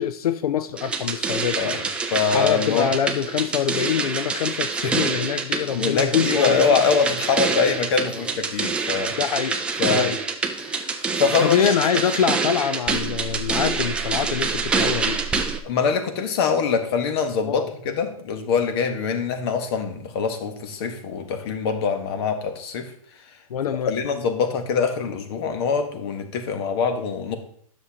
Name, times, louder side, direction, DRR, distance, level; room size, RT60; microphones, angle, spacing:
voice 1, 0.0-1.8 2.3-6.8 8.2-8.3 9.2-9.6 9.9-10.2 11.4-15.2 17.5-17.7 23.5-23.9, left 8 dB, 90° left, 12 dB, 0.5 m, -25 dB
sound 1, 0.8-15.6, right 4 dB, 5° right, 0.4 m, -26 dB
voice 2, 2.1-2.9 4.8-5.1 5.7-9.1 9.8-10.2 10.6-10.9 11.2-11.7 15.6-22.9 23.9-27.4, left 5 dB, 45° left, 7 dB, 1.2 m, -24 dB
9.8 x 6.6 x 2.9 m, 0.62 s
hypercardioid pair, 150°, 19 cm